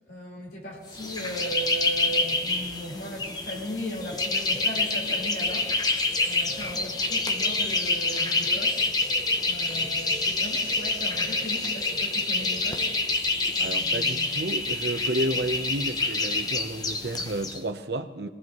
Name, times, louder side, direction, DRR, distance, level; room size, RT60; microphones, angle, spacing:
voice 1, 0.1-5.9 6.2-8.9 9.5-12.9 13.5-14.3, right 1 dB, 60° left, -4 dB, 4.3 m, -37 dB
sound 1, 0.9-17.6, left 3 dB, 20° left, 0.8 m, -27 dB
voice 2, 13.6-18.3, right 1 dB, 70° right, 8 dB, 0.9 m, -31 dB
22.5 x 18.0 x 3.1 m, 1.4 s
head